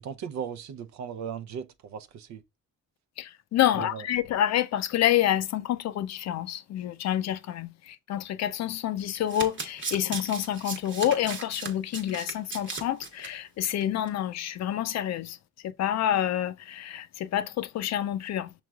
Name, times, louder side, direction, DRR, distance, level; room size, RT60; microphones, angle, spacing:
voice 1, 0.0-2.4 3.7-4.1, right 7 dB, 65° right, 0.6 m, -37 dB
voice 2, 3.2-15.4 15.6-18.5, left 11 dB, 60° left, 0.5 m, -28 dB
Domestic sounds home sounds, 9.0-13.3 13.6-13.8 14.1-14.2, right 4 dB, 40° right, 1.0 m, -37 dB
6.0 x 3.1 x 2.3 m
cardioid pair, 90°, 30 cm